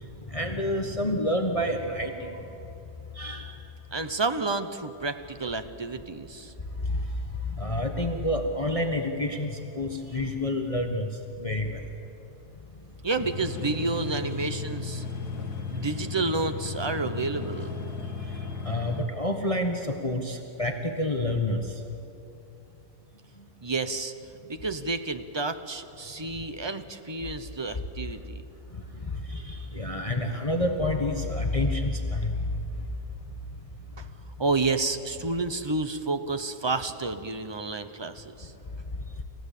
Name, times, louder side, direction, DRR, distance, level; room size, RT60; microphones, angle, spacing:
voice 1, 0.3-2.4 3.1-3.5 6.9-7.0 7.5-9.5 9.7-11.1 11.4-11.8 18.6-21.6 29.1-32.5, left 1 dB, 25° left, 3 dB, 1.3 m, -28 dB
voice 2, 3.9-6.5 13.0-15.0 15.7-17.7 23.6-24.1 24.5-28.4 34.0-34.1 34.4-38.5, right 3 dB, 25° right, 9 dB, 0.7 m, -30 dB
sound 1, 13.2-19.0, left 4 dB, 85° left, 2.5 m, -35 dB
29.0 x 15.5 x 8.4 m, 2.9 s
omnidirectional pair, 1.7 m